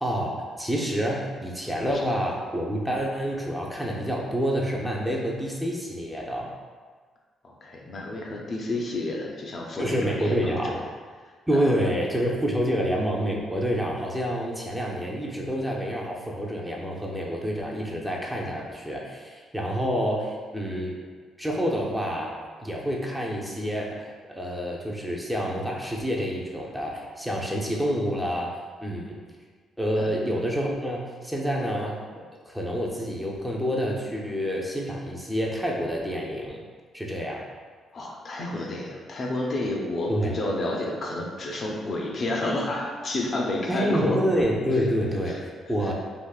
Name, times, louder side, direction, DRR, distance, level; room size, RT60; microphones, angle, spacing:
voice 1, 0.0-6.5 9.8-10.8 11.5-21.0 21.4-22.3 22.6-28.5 28.8-29.2 29.8-32.0 32.5-36.6 36.9-37.4 40.1-40.3 43.7-45.9, equal, 5° right, -3 dB, 0.5 m, -28 dB
voice 2, 7.4-10.8 11.5-11.6 30.0-30.1 37.9-44.2 45.2-45.4 45.8-45.9, left 2 dB, 45° left, -1 dB, 0.4 m, -30 dB
3.5 x 2.4 x 2.3 m, 1.5 s
cardioid pair, 90°, 0 cm